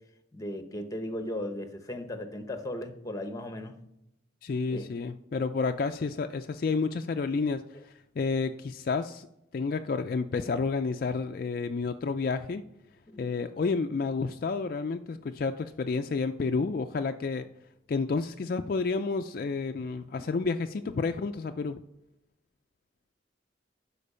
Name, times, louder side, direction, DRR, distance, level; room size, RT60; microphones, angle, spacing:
voice 1, 0.3-3.7 4.7-4.9 13.1-13.2 20.1-20.3, left 1 dB, 20° left, 7 dB, 0.8 m, -36 dB
voice 2, 4.4-9.3 9.5-12.6 13.2-17.5 17.9-21.8, left 4 dB, 50° left, 7 dB, 0.3 m, -30 dB
12.0 x 4.5 x 5.5 m, 0.84 s
head